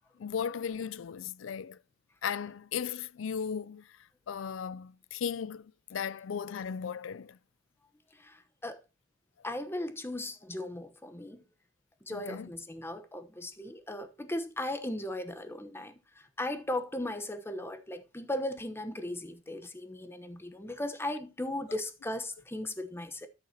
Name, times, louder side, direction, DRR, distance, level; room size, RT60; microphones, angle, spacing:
voice 1, 0.2-1.8 2.2-3.9 4.3-7.4 12.3-12.5, left 7 dB, 90° left, 0.4 m, -36 dB
voice 2, 8.2-8.8 9.4-11.4 12.1-15.9 16.4-23.3, left 1 dB, 10° left, 1.0 m, -37 dB
12.5 x 6.8 x 2.8 m
head